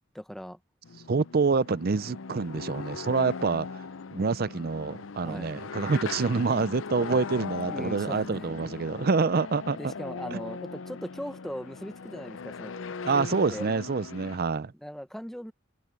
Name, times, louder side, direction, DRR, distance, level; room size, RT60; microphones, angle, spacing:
voice 1, 0.1-0.6 5.2-5.5 7.6-8.5 9.8-12.7 13.1-13.7 14.8-15.5, equal, ahead, 0.9 m, -39 dB
sound 1, 0.8-14.4, left 5 dB, 75° left, 0.6 m, -39 dB
voice 2, 1.1-3.8 4.1-9.8 10.3-10.4 13.0-14.7, right 4 dB, 50° right, 0.5 m, -27 dB
head